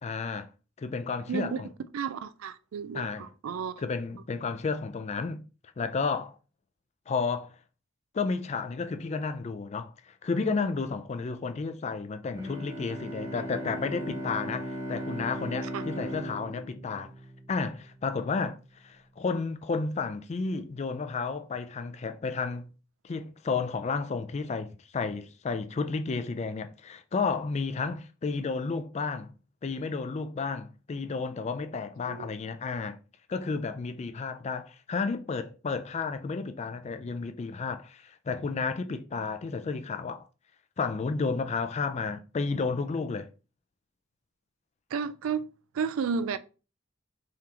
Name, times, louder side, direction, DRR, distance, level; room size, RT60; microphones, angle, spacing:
voice 1, 0.0-0.5 0.8-1.7 2.9-3.3 3.8-5.4 5.8-6.4 7.1-7.5 8.1-17.1 17.5-18.6 18.8-22.7 23.0-29.3 29.6-33.0 33.3-40.2 40.8-43.3, left 4 dB, 35° left, 0.3 m, -32 dB
voice 2, 1.3-1.6 1.9-3.7 15.7-15.8 32.1-32.3 44.9-45.4 45.7-46.4, right 6 dB, 90° right, 0.4 m, -32 dB
Bowed string instrument, 12.3-17.9, right 1 dB, 40° right, 1.3 m, -37 dB
3.7 x 3.3 x 2.9 m
head